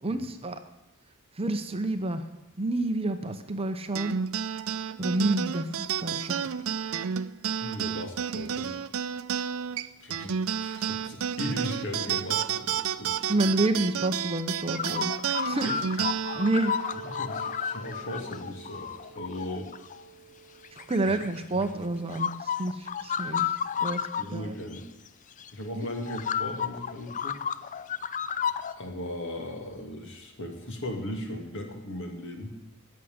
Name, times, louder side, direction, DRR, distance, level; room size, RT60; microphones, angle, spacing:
voice 1, 0.0-0.6 1.4-2.3 2.6-4.2 5.0-6.5 13.3-15.2 15.5-15.7 16.3-16.8 20.7-24.5 25.8-25.9, right 2 dB, 25° right, 9 dB, 0.8 m, -29 dB
sound 1, 3.9-18.7, right 8 dB, 65° right, 0.5 m, -31 dB
voice 2, 7.6-8.7 10.0-10.3 10.6-13.1 15.6-15.8 17.0-19.7 21.0-21.2 24.2-24.8 25.5-27.4 28.7-32.6, left 1 dB, 60° left, 3 dB, 2.4 m, -37 dB
sound 2, 14.7-20.0 20.6-21.7 22.1-24.3 24.7-24.8 25.4-25.5 26.0-28.7, left 8 dB, 35° left, 0.5 m, -32 dB
14.5 x 6.5 x 9.5 m, 0.99 s
head